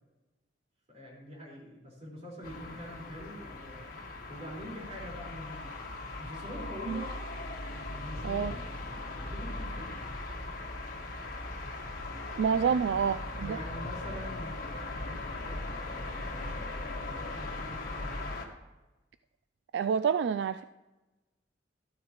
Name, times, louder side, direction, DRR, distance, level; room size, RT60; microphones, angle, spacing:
voice 1, 0.9-5.8 6.2-7.1 7.9-8.6 9.2-10.1 12.5-13.0 13.4-15.6 15.9-18.2, equal, 35° right, -3 dB, 4.6 m, -45 dB
sound 1, 2.4-18.5, left 2 dB, 50° left, 1.6 m, -39 dB
voice 2, 12.4-13.6 19.7-20.6, right 6 dB, 70° right, 13 dB, 0.3 m, -28 dB
13.5 x 13.0 x 3.0 m, 1.1 s
head